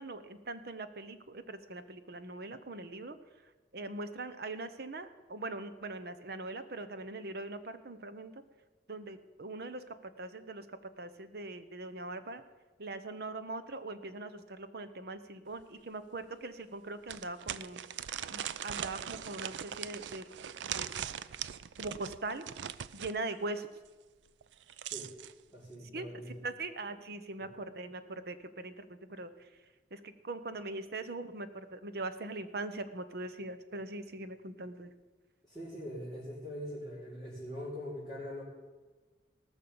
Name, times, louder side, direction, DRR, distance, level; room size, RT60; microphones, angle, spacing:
voice 1, 0.0-3.2 3.4-8.4 8.9-12.4 12.8-17.8 18.3-20.3 20.7-21.0 21.8-22.5 22.9-23.7 25.9-29.5 29.9-34.9, right 2 dB, 60° right, 11 dB, 0.9 m, -41 dB
sound 1, 15.6-15.7 16.1-16.2 17.1-23.2 24.4-25.3, right 9 dB, 90° right, 0.4 m, -40 dB
voice 2, 25.5-26.3 27.4-27.5 35.4-38.4, equal, 15° right, -10 dB, 4.4 m, -42 dB
19.0 x 6.3 x 7.0 m, 1.3 s
head